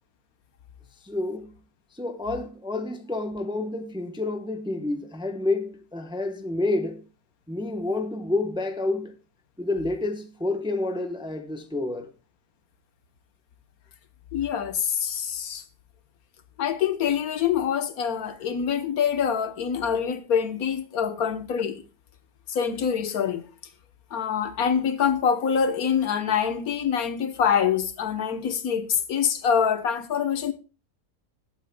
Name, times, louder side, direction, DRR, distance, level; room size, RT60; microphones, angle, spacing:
voice 1, 1.0-1.5 1.9-7.0 7.5-9.1 9.6-12.1, left 2 dB, 5° right, 0.7 m, -29 dB
voice 2, 14.3-15.6 16.6-21.8 22.5-23.5 24.1-30.5, left 7 dB, 75° left, 1.5 m, -25 dB
19.5 x 8.6 x 2.2 m
omnidirectional pair, 1.6 m